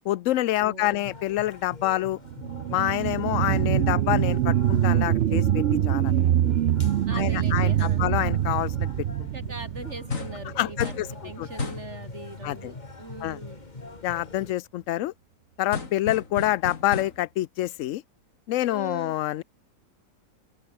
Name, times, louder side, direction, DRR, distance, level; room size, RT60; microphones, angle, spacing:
voice 1, 0.1-2.2 2.7-6.1 7.1-8.9 9.2-9.3 10.6-11.1 11.4-11.5 12.4-12.7 13.2-13.4 14.0-15.1 15.6-18.0 18.5-19.4, left 14 dB, 80° left, 0.7 m, -27 dB
voice 2, 0.6-1.1 7.1-8.2 9.3-10.9 11.2-13.6 18.7-19.2, right 2 dB, 40° right, 6.9 m, -41 dB
sound 1, 1.0-14.5, left 3 dB, 25° left, 2.3 m, -43 dB
sound 2, 2.3-11.3 11.8-11.9, right 11 dB, 80° right, 0.6 m, -24 dB
sound 3, 10.1-10.5 10.8-11.1 11.6-11.9 15.7-17.3, left 3 dB, 45° left, 3.4 m, -34 dB
open air
omnidirectional pair, 1.9 m